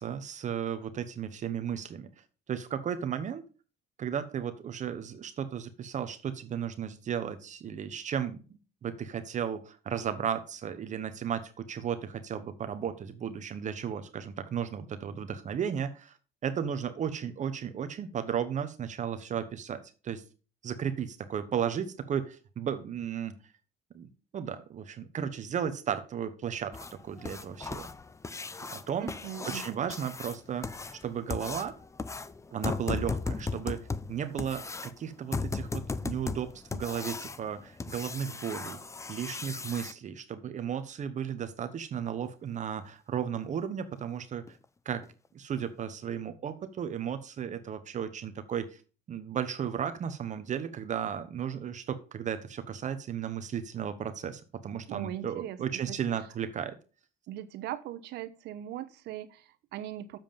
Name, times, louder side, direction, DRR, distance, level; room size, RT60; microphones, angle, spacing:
voice 1, 0.0-2.1 2.5-3.4 4.0-8.4 8.8-16.1 16.4-20.2 20.6-23.3 23.9-27.9 28.7-29.1 29.5-31.7 32.5-38.8 39.1-44.4 44.8-45.0 45.3-48.8 49.1-56.7, right 8 dB, 45° right, 10 dB, 1.0 m, -34 dB
sound 1, 26.7-39.9 42.2-42.3 42.8-42.9 43.3-43.4 43.9-44.0 44.5-44.6 45.0-45.1 45.6-45.7, left 4 dB, 15° left, 0.6 m, -37 dB
voice 2, 29.0-29.9 54.9-56.0 57.3-60.2, right 12 dB, 80° right, 11 dB, 1.1 m, -40 dB
7.4 x 7.3 x 5.3 m, 0.36 s
cardioid pair, 110°, 17 cm